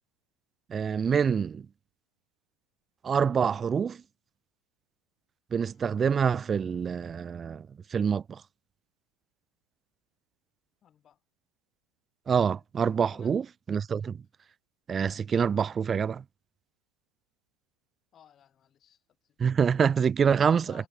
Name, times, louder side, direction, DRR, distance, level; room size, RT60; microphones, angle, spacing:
voice 1, 0.7-1.6 3.0-4.0 5.5-7.6 7.9-8.4 12.3-14.2 14.9-16.2 19.4-20.9, right 7 dB, 25° right, 0.7 m, -26 dB
voice 2, 10.8-11.2 13.1-13.4 18.1-19.0 19.4-19.5 20.3-20.9, left 9 dB, 30° left, 7.1 m, -57 dB
supercardioid pair, 120°, 0 cm